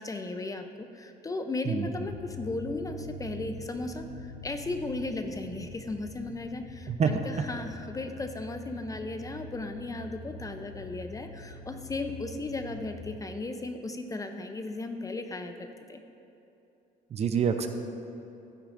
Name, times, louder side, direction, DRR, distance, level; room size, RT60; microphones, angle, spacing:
voice 1, 0.0-16.0, left 2 dB, 20° left, 6 dB, 0.6 m, -36 dB
sound 1, 2.0-13.2, left 1 dB, 85° left, 1.2 m, -45 dB
voice 2, 6.9-7.2 17.1-17.7, right 6 dB, 40° right, 7 dB, 0.7 m, -26 dB
14.5 x 8.7 x 2.6 m, 2.9 s
cardioid pair, 110°, 17 cm